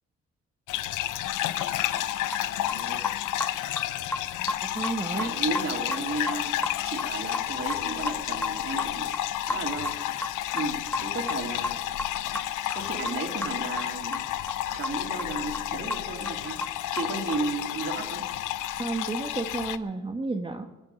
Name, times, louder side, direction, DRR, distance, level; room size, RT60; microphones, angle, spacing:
sound 1, 0.7-19.8, left 13 dB, 90° left, 0.8 m, -31 dB
sound 2, 1.5-2.4 2.7-3.2 3.4-8.2 8.4-8.5 8.8-14.6 14.8-17.6, left 2 dB, 5° left, 0.5 m, -33 dB
voice 1, 2.7-3.1 5.2-6.5 6.8-9.1 9.4-10.0 10.5-11.8 12.7-14.2 14.7-16.6 16.9-18.3, right 3 dB, 45° right, 2 dB, 3.4 m, -34 dB
voice 2, 4.6-5.3 18.8-20.7, right 3 dB, 15° right, 3 dB, 1.2 m, -31 dB
23.5 x 8.0 x 6.9 m, 1.2 s
cardioid pair, 90°, 30 cm